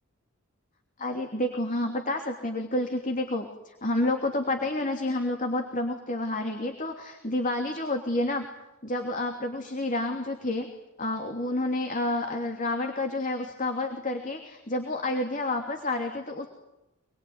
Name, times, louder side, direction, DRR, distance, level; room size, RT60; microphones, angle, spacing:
voice 1, 1.0-8.5 8.8-10.7 11.0-16.5, left 2 dB, 40° left, 4 dB, 3.0 m, -29 dB
27.0 x 22.5 x 9.7 m, 0.92 s
head